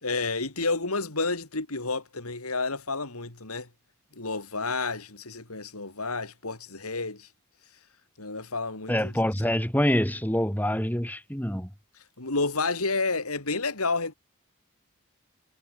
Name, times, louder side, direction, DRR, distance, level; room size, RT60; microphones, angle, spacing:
voice 1, 0.0-3.7 4.1-7.3 8.2-9.1 12.2-14.1, left 3 dB, 80° left, 3.7 m, -30 dB
voice 2, 8.9-11.7, equal, 10° left, 3.9 m, -26 dB
head